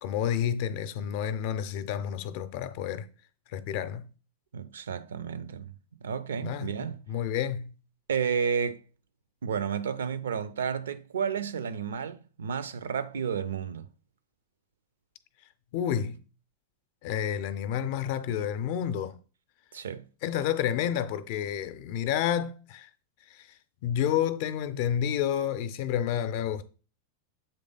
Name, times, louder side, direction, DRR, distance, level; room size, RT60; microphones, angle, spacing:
voice 1, 0.0-3.1 3.5-4.1 6.4-6.8 7.1-7.7 15.7-16.2 17.0-19.1 20.2-22.9 23.3-23.5 23.8-26.7, left 9 dB, 50° left, 0.5 m, -30 dB
voice 2, 4.5-5.7 6.0-7.0 8.1-8.8 9.4-13.9 19.7-20.0, right 7 dB, 65° right, 0.5 m, -31 dB
7.9 x 3.3 x 3.9 m
figure-of-eight pair, 90°, 0 cm